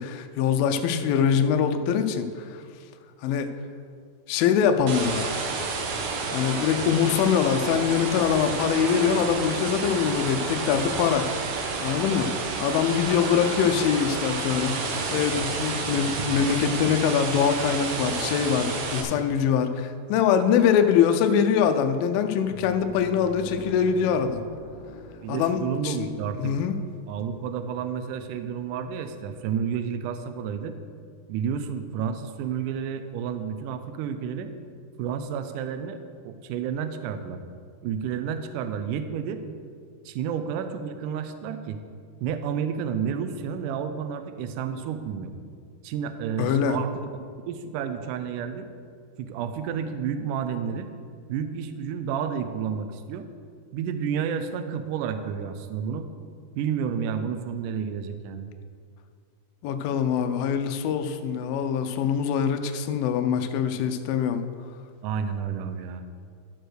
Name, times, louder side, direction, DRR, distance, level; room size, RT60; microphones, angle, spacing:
voice 1, 0.0-2.6 3.2-3.5 4.3-5.3 6.3-11.3 11.8-24.4 25.3-26.1 26.4-26.8 46.4-46.8 59.6-64.4, left 7 dB, 80° left, 7 dB, 2.2 m, -23 dB
sound 1, 4.9-19.0, right 4 dB, 75° right, 1.8 m, -30 dB
sound 2, 22.3-31.3 31.6-31.8 33.9-34.0, left 1 dB, 30° left, 1.1 m, -45 dB
voice 2, 25.2-26.5 27.1-30.7 31.3-34.5 35.0-36.0 36.2-37.4 37.8-39.4 40.1-41.8 42.2-45.3 45.8-47.1 47.5-48.7 49.2-50.9 51.3-53.3 53.7-56.1 56.6-58.5 65.0-66.0, right 7 dB, 90° right, 9 dB, 1.8 m, -30 dB
12.0 x 4.5 x 6.3 m, 2.2 s
omnidirectional pair, 4.4 m